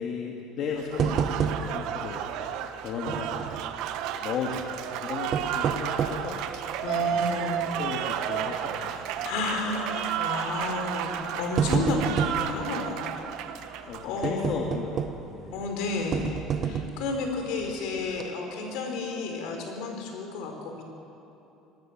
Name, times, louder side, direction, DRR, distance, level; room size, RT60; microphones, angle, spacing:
voice 1, 0.0-2.2 2.8-3.8 4.1-6.8 7.1-7.5 7.8-9.0 12.2-12.4 13.9-15.7, left 6 dB, 55° left, -1 dB, 2.2 m, -35 dB
Applause, 0.8-14.4, right 9 dB, 70° right, 1.3 m, -32 dB
sound 1, 1.0-2.0 2.2-2.3 3.1-3.7 5.1-6.3 6.9-7.0 7.6-7.9 8.2-8.3 9.4-9.7 10.6-10.8 11.2-12.5 14.2-15.4 16.1-17.1 17.6-17.8 18.1-18.2, right 7 dB, 40° right, 1.3 m, -28 dB
voice 2, 6.8-7.8 9.2-13.1 13.5-14.6 15.5-20.8, left 3 dB, 75° left, 3 dB, 5.0 m, -32 dB
25.5 x 19.5 x 7.6 m, 2.9 s
cardioid pair, 135°, 0 cm